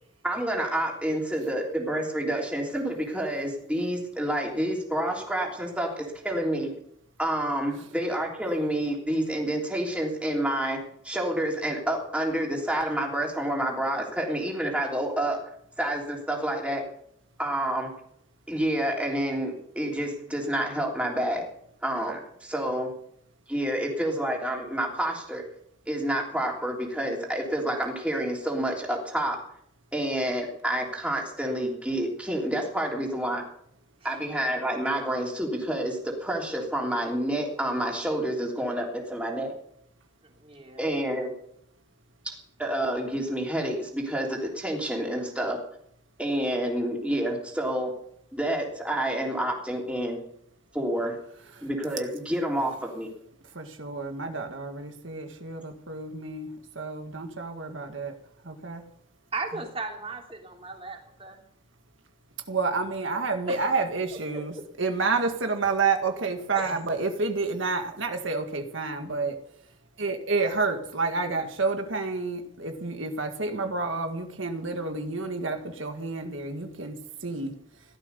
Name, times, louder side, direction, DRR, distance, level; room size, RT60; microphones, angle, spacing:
voice 1, 0.2-6.7 7.2-15.4 15.8-16.8 17.4-17.9 18.5-21.5 21.8-22.9 23.5-25.4 25.9-29.4 29.9-33.4 34.0-39.5 40.8-41.3 42.6-45.6 46.2-47.9 48.3-50.2 50.7-51.2 51.6-53.1, right 1 dB, 5° right, -1 dB, 3.3 m, -28 dB
voice 2, 40.4-40.9 59.3-61.4 63.5-63.6 64.3-64.6 66.5-66.7, right 3 dB, 30° right, 2 dB, 3.3 m, -36 dB
voice 3, 53.5-58.2 58.4-58.8 62.5-69.4 70.0-77.0 77.2-77.6, right 4 dB, 75° right, 6 dB, 1.8 m, -29 dB
16.0 x 13.0 x 6.9 m, 0.70 s
head